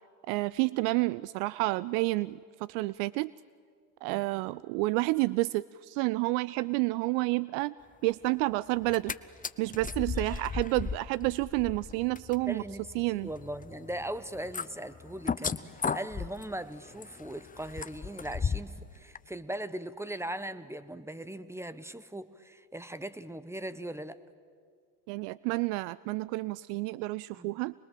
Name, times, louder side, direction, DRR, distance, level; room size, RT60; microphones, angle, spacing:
voice 1, 0.3-3.3 4.0-7.7 8.0-9.1 9.6-12.6 13.0-13.3 25.1-27.7, right 21 dB, 70° right, 20 dB, 0.5 m, -30 dB
sound 1, 8.8-9.2 9.4-18.8 19.2-19.3, left 6 dB, 15° left, 0.7 m, -36 dB
voice 2, 12.5-24.2 27.3-27.6, right 1 dB, 5° right, 13 dB, 1.0 m, -39 dB
25.5 x 21.5 x 7.6 m, 2.1 s
hypercardioid pair, 80°, 49 cm